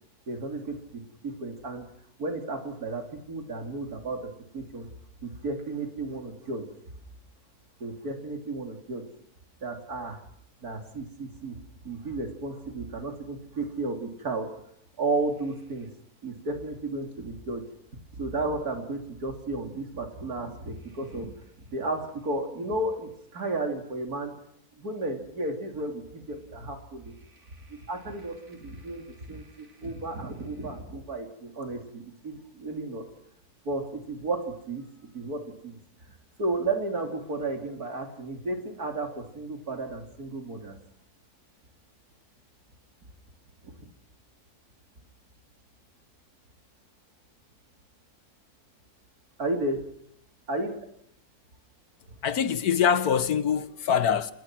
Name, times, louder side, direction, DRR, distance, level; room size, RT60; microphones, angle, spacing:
voice 1, 0.3-1.9 2.2-4.9 5.2-6.7 7.8-9.0 9.6-10.2 10.6-11.6 11.8-14.5 15.0-15.9 16.2-17.6 18.1-21.3 21.7-24.3 24.8-27.2 27.4-33.0 33.7-34.8 35.1-35.8 36.1-40.8 43.6-43.9 49.4-49.8 50.5-50.7, right 2 dB, 70° right, 3.5 m, -33 dB
voice 2, 52.2-54.3, left 7 dB, 75° left, 1.7 m, -24 dB
29.0 x 20.5 x 6.1 m
omnidirectional pair, 1.7 m